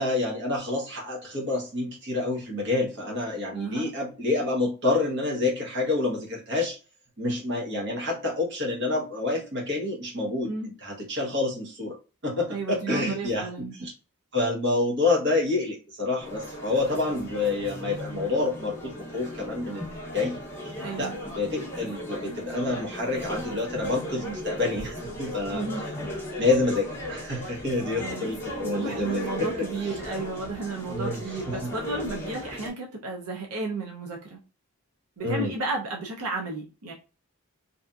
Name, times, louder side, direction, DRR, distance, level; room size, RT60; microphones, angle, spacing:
voice 1, 0.0-6.8 7.2-10.5 10.8-11.9 12.2-13.9 14.3-20.4 21.0-25.6 26.4-29.7 30.9-31.2 31.5-31.6 35.2-35.5, left 2 dB, 50° right, -2 dB, 1.0 m, -28 dB
voice 2, 3.5-3.9 10.5-10.7 12.5-13.7 20.8-21.2 25.5-25.9 28.0-28.3 28.6-34.4 35.2-36.9, right 3 dB, 85° right, 0 dB, 0.6 m, -33 dB
sound 1, 16.2-32.7, equal, 10° left, 0.6 m, -37 dB
2.8 x 2.4 x 2.3 m, 0.33 s
head